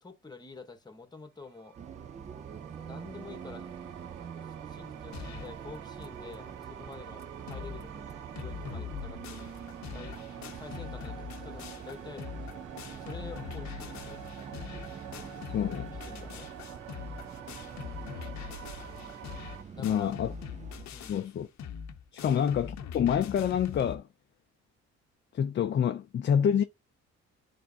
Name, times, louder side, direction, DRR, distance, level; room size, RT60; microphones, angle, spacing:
voice 1, 0.0-1.8 2.7-3.7 4.7-8.0 8.3-9.7 9.9-10.2 10.5-12.3 13.0-14.3 15.9-16.5 19.7-20.2 20.9-21.2 22.2-22.4, left 3 dB, 15° left, 1.1 m, -48 dB
sound 1, 1.4-19.6, right 8 dB, 80° right, 0.8 m, -48 dB
Bus, 1.8-20.9, right 7 dB, 25° right, 0.3 m, -45 dB
sound 2, 5.1-5.6 6.0-6.1 6.3-6.4 6.9-7.0 7.2-7.8 8.1-24.0, left 7 dB, 65° left, 0.7 m, -42 dB
voice 2, 15.5-15.9 19.8-20.3 21.1-21.5 22.1-24.1 25.3-26.6, left 8 dB, 40° left, 0.4 m, -27 dB
10.5 x 3.4 x 2.7 m
cardioid pair, 90°, 30 cm